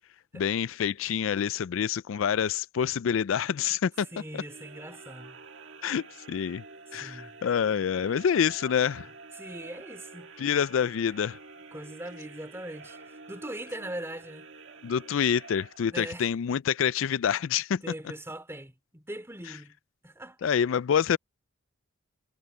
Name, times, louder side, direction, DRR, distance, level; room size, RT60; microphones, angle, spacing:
voice 1, 0.3-4.1 5.8-6.6 6.9-9.1 10.4-11.4 14.8-17.8 20.4-21.2, left 8 dB, 75° left, 0.4 m, -27 dB
sound 1, 4.0-16.3, right 3 dB, 60° right, 2.0 m, -48 dB
voice 2, 4.1-5.4 6.9-7.3 9.3-10.3 11.7-14.5 15.9-16.3 17.8-19.8 20.0-20.5, right 1 dB, 10° right, 3.3 m, -41 dB
head